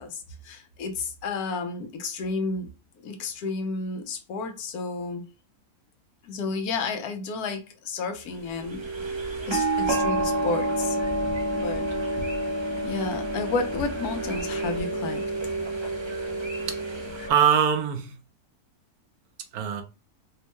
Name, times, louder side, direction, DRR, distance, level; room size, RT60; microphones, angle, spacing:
voice 1, 0.0-2.7 3.0-5.2 6.2-8.8 9.5-11.0 11.5-11.9 12.2-12.3 12.8-15.2, left 4 dB, 80° left, 1.2 m, -31 dB
sound 1, 8.5-17.3, right 1 dB, 45° right, 0.3 m, -29 dB
voice 2, 16.7-18.2 19.5-19.8, right 8 dB, 75° right, 1.2 m, -24 dB
4.4 x 2.1 x 3.0 m
omnidirectional pair, 1.6 m